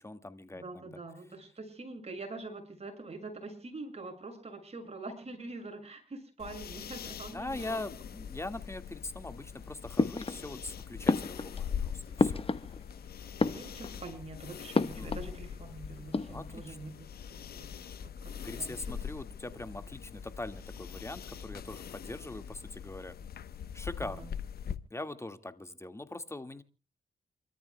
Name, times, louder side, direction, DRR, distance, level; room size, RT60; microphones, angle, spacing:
voice 1, 0.0-0.9 7.3-12.4 14.9-15.2 16.3-16.8 18.4-23.1 23.7-24.3 24.9-26.6, left 2 dB, 15° left, 9 dB, 1.9 m, -42 dB
voice 2, 0.6-7.8 13.4-16.9 17.3-17.7 18.2-18.3 18.6-19.0 24.0-24.3, right 3 dB, 40° right, 5 dB, 6.6 m, -44 dB
sound 1, 6.4-24.8, left 7 dB, 70° left, 1.0 m, -42 dB
sound 2, 10.0-10.7 11.1-13.0 13.3-14.1 14.7-15.4 15.6-15.7 16.0-16.7, left 3 dB, 35° left, 1.2 m, -31 dB
28.5 x 13.5 x 2.2 m, 0.32 s
supercardioid pair, 55°, 16 cm